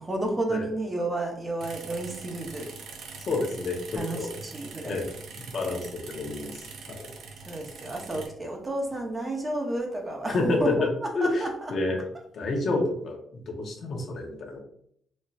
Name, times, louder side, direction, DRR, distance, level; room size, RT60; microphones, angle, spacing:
voice 1, 0.0-2.7 3.9-5.0 7.5-10.7 11.2-11.5, right 2 dB, 25° right, 1 dB, 0.9 m, -31 dB
sound 1, 1.6-8.3, right 4 dB, 70° right, 0.6 m, -43 dB
voice 2, 3.3-4.3 4.9-5.1 5.4-7.1 10.3-10.9 11.1-12.0 12.3-14.6, left 2 dB, 55° left, 1 dB, 0.9 m, -29 dB
4.3 x 3.0 x 2.4 m, 0.67 s
cardioid pair, 90°, 0 cm